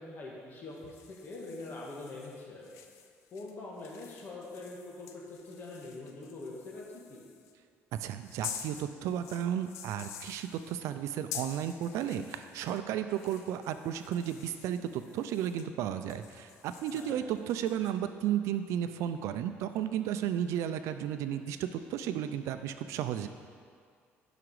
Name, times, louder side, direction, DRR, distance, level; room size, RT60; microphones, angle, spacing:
voice 1, 0.0-2.7 3.3-7.2 16.9-17.3, left 2 dB, 45° left, -3 dB, 1.6 m, -44 dB
sound 1, 0.7-7.5 8.2-12.8 13.1-15.7 16.0-17.9, left 8 dB, 85° left, 0.6 m, -48 dB
voice 2, 8.0-23.3, right 10 dB, 80° right, 9 dB, 0.5 m, -33 dB
11.0 x 5.0 x 4.8 m, 2.1 s
cardioid pair, 140°, 5 cm